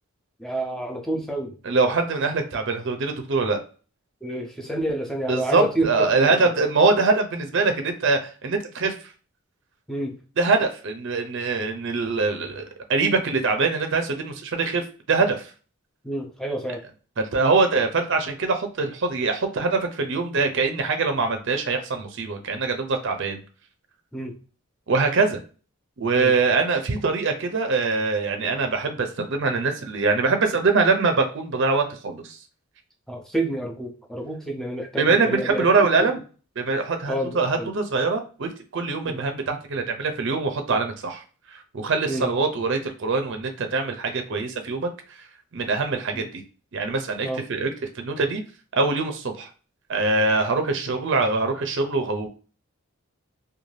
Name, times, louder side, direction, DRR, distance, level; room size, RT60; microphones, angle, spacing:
voice 1, 0.4-1.6 4.2-6.3 9.9-10.2 16.0-16.9 24.1-24.4 26.2-26.3 33.1-35.7 36.0-36.1 37.1-37.7 39.0-39.2 42.1-42.3 46.1-46.2 47.2-47.4, right 1 dB, ahead, 2 dB, 0.4 m, -29 dB
voice 2, 1.6-3.6 5.3-8.9 10.4-14.8 15.1-15.5 17.2-23.4 24.9-25.4 26.0-32.4 35.0-36.2 36.6-41.2 41.5-45.2 45.5-46.4 46.7-47.7 47.9-48.4 48.7-49.5 49.9-52.3, right 4 dB, 55° right, 5 dB, 0.5 m, -23 dB
2.5 x 2.2 x 3.2 m, 0.37 s
head